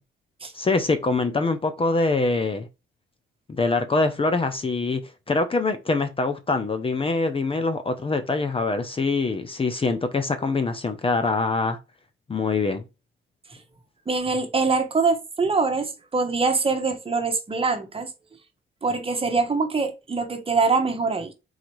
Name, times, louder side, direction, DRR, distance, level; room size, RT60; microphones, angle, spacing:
voice 1, 0.5-2.7 3.5-11.8 12.3-12.8, left 3 dB, 25° left, 0.7 m, -24 dB
voice 2, 14.1-18.1 18.8-21.3, right 4 dB, 30° right, 1.2 m, -24 dB
4.0 x 2.8 x 4.6 m
cardioid pair, 90°, 20 cm